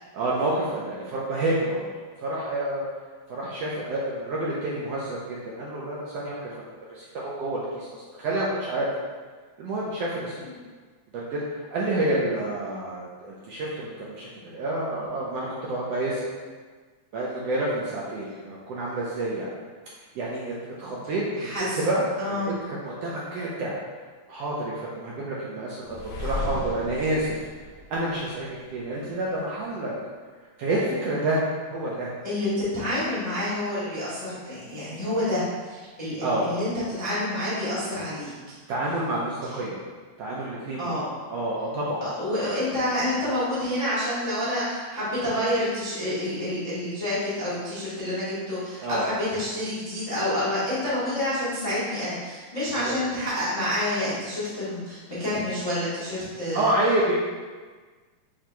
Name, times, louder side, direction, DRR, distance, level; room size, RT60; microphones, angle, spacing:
voice 1, 0.1-1.9 2.2-2.8 3.3-8.9 9.6-10.4 11.3-11.4 11.7-16.3 17.1-19.5 20.1-21.3 21.6-23.8 24.3-27.3 27.9-29.9 30.6-31.4 31.7-32.1 36.2-36.5 38.7-39.8 40.2-42.0 48.8-49.0 52.8-53.0 56.5-57.1, right 1 dB, 75° right, -5 dB, 1.5 m, -28 dB
voice 2, 21.4-21.8 22.2-22.6 32.2-36.7 37.0-38.3 40.8-41.1 42.0-56.7, left 1 dB, 30° left, -11 dB, 0.6 m, -28 dB
sound 1, 25.9-28.8, left 2 dB, 75° left, 1.4 m, -35 dB
7.4 x 2.9 x 2.3 m, 1.4 s
omnidirectional pair, 3.3 m